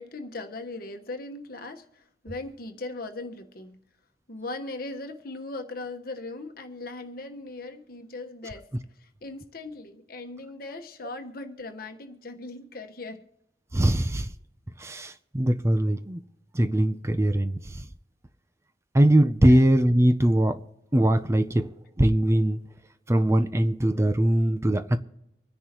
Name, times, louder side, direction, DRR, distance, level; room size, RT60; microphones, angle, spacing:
voice 1, 0.0-3.8 4.3-8.7 9.0-13.2 19.4-19.7, left 2 dB, 55° left, 1.3 m, -39 dB
voice 2, 13.7-14.3 14.8-16.2 16.5-17.9 18.9-20.6 20.9-22.6 23.1-25.0, right 1 dB, 15° right, 0.5 m, -22 dB
25.5 x 10.0 x 3.0 m
head